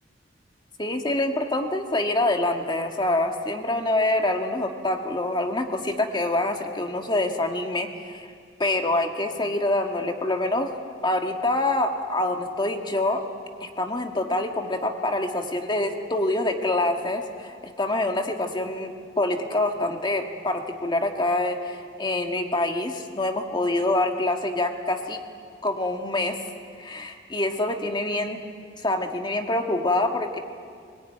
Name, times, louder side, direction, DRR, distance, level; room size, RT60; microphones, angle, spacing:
voice 1, 0.8-8.3 8.6-10.7 11.0-13.2 13.6-25.2 25.6-26.4 26.8-28.4 28.8-30.4, left 2 dB, 25° left, 4 dB, 1.8 m, -26 dB
23.5 x 20.0 x 9.3 m, 2.1 s
head